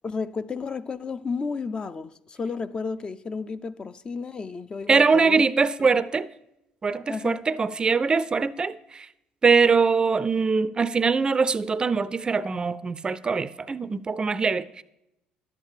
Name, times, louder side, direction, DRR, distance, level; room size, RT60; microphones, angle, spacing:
voice 1, 0.0-5.4 5.8-5.9 7.1-7.4, left 4 dB, 30° left, 0.4 m, -32 dB
voice 2, 4.9-6.3 6.8-9.1 9.4-14.8, right 5 dB, 30° right, 0.4 m, -22 dB
10.5 x 8.1 x 4.9 m
supercardioid pair, 80°, 3 cm